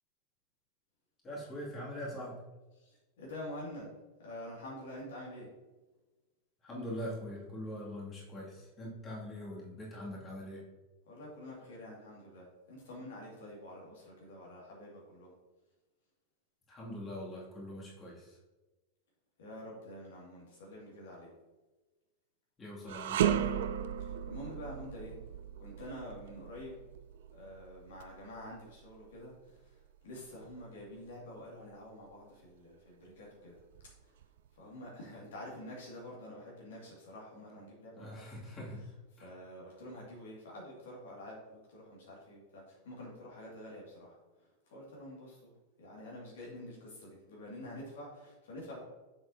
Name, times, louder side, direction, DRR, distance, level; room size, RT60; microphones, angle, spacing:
voice 1, 1.2-2.4 6.6-10.6 16.7-18.4 22.6-23.4 38.0-38.8 39.2-39.3, equal, 20° left, -5 dB, 2.5 m, -42 dB
voice 2, 2.7-3.9 4.2-5.5 11.1-15.3 19.4-21.3 24.0-25.1 25.6-26.8 27.3-29.8 30.0-33.6 34.6-38.2 39.1-44.2 44.7-45.5 45.8-48.8, left 1 dB, 60° left, -4 dB, 2.3 m, -47 dB
sound 1, 22.9-32.1 32.5-32.7 33.6-34.5, right 10 dB, 55° right, 0.4 m, -37 dB
7.4 x 7.0 x 2.8 m, 1.1 s
figure-of-eight pair, 90°, 0 cm